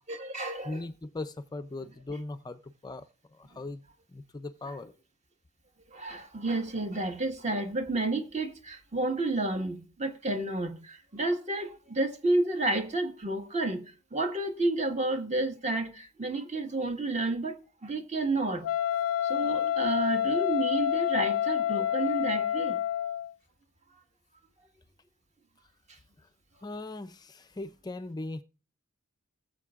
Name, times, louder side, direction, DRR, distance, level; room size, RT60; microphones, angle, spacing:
voice 1, 0.1-0.8 4.7-4.8 5.9-13.8 14.1-18.7 19.2-22.8, right 2 dB, 35° right, 1.5 m, -31 dB
voice 2, 0.6-3.1 3.3-3.8 4.1-4.9 26.6-28.4, left 2 dB, 20° left, 0.4 m, -39 dB
Wind instrument woodwind instrument, 18.6-23.3, left 10 dB, 80° left, 0.4 m, -28 dB
19.5 x 7.5 x 2.4 m
head